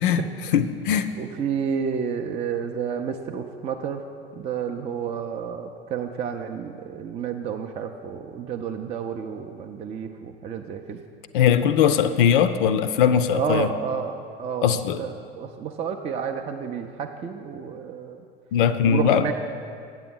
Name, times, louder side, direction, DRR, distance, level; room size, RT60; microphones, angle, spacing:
voice 1, 0.5-1.1 11.3-13.7 14.6-15.0 18.5-19.3, left 8 dB, 60° left, 11 dB, 0.5 m, -20 dB
voice 2, 1.2-4.0 4.4-11.0 13.3-18.2 18.8-19.3, right 7 dB, 20° right, 3 dB, 0.4 m, -30 dB
8.1 x 7.5 x 5.4 m, 2.4 s
figure-of-eight pair, 75°, 30 cm